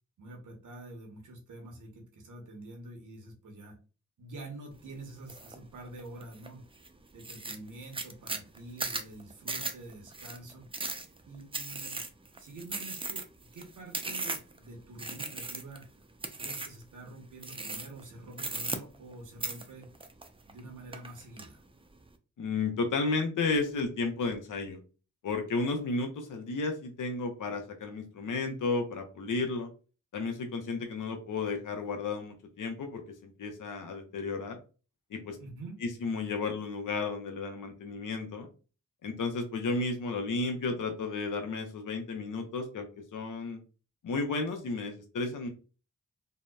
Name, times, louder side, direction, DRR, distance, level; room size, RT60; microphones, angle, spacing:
voice 1, 0.2-3.8 4.2-6.7 7.1-10.9 11.3-12.1 12.4-15.9 16.4-19.9 20.5-21.6 35.4-35.8, right 2 dB, 75° right, 1 dB, 0.8 m, -47 dB
sound 1, 5.3-5.5 6.0-6.5 6.8-6.9 7.2-14.6 15.0-15.8 16.2-16.8 17.4-18.0 18.3-19.1 19.4-20.6 20.9-21.5, right 3 dB, 15° right, 0.4 m, -37 dB
voice 2, 22.4-24.8 25.2-29.7 30.1-34.6 35.1-35.4 36.0-38.5 39.0-43.6 44.0-45.5, left 3 dB, 75° left, 4 dB, 0.7 m, -33 dB
2.8 x 2.0 x 2.2 m, 0.34 s
cardioid pair, 40°, 32 cm